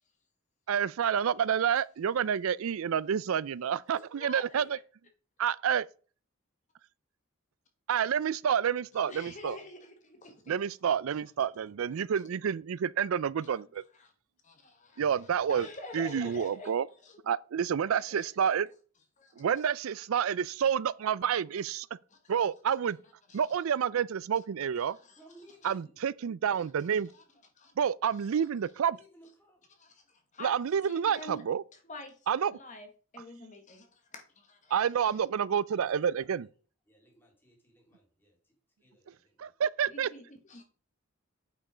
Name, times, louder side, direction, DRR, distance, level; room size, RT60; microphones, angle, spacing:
voice 1, 0.7-4.8 5.4-5.9 7.9-9.6 10.5-13.8 15.0-15.7 15.9-16.9 17.3-18.7 19.4-21.9 22.3-23.0 23.3-25.0 25.6-27.1 27.8-29.0 30.4-31.6 32.3-32.6 34.7-36.5 39.4-40.1, right 8 dB, 75° right, 0.4 m, -29 dB
voice 2, 3.9-4.7 9.1-10.5 13.4-13.6 13.9-14.1 14.4-17.2 17.9-18.3 19.2-19.5 22.1-22.2 22.7-22.8 23.3-23.6 24.8-25.2 25.6-25.7 26.5-27.2 27.5-27.7 28.2-28.3 29.7-30.5 30.8-31.4 31.8-32.2 32.5-34.7 39.9-40.6, left 1 dB, 35° left, 1.2 m, -47 dB
voice 3, 25.2-26.0 28.8-29.7 35.7-36.5 36.9-38.6 38.8-39.5, right 1 dB, 10° left, 2.7 m, -59 dB
8.5 x 5.3 x 5.0 m
head